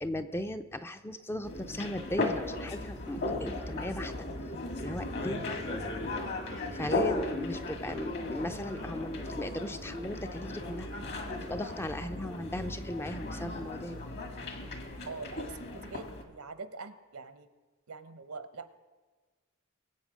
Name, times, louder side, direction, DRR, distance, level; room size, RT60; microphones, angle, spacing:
voice 1, 0.0-4.1 4.8-5.8 6.7-10.9 11.4-14.0, left 1 dB, 10° left, 9 dB, 0.5 m, -37 dB
sound 1, 1.4-16.2, left 2 dB, 50° left, 1.8 m, -36 dB
voice 2, 12.0-12.5 15.1-17.5 17.9-18.7, right 4 dB, 75° right, 11 dB, 1.0 m, -44 dB
23.0 x 8.1 x 5.1 m, 1.4 s
head